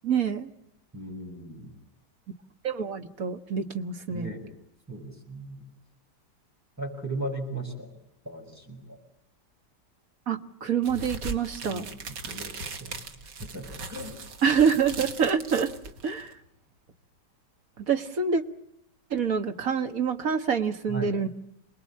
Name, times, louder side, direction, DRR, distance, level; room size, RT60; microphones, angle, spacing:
voice 1, 0.0-0.5 2.6-4.3 10.3-11.8 14.4-15.7 16.0-16.3 17.8-18.4 19.1-21.3, right 6 dB, 50° right, 8 dB, 1.7 m, -26 dB
voice 2, 0.9-1.7 4.1-4.4 4.9-5.6 6.8-7.9 8.2-9.0 11.6-12.0 12.3-13.0 13.4-14.1 20.9-21.1, right 2 dB, 10° right, 1 dB, 6.3 m, -37 dB
sound 1, 10.8-16.3, right 3 dB, 75° right, 2.4 m, -39 dB
27.5 x 20.5 x 8.6 m, 0.79 s
omnidirectional pair, 1.9 m